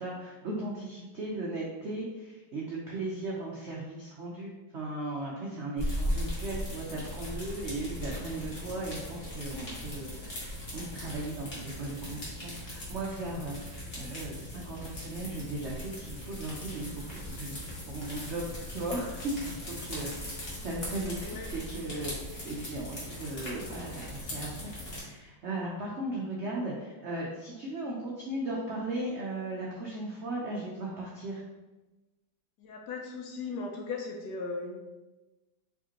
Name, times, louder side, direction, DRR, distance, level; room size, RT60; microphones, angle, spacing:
voice 1, 0.0-20.4 20.6-24.7 25.0-31.4, right 2 dB, 75° right, -4 dB, 0.6 m, -37 dB
sound 1, 5.8-25.0, left 1 dB, 35° left, 1.4 m, -39 dB
voice 2, 32.6-34.8, left 4 dB, 70° left, 1 dB, 1.1 m, -37 dB
4.8 x 3.5 x 2.9 m, 1.1 s
omnidirectional pair, 2.1 m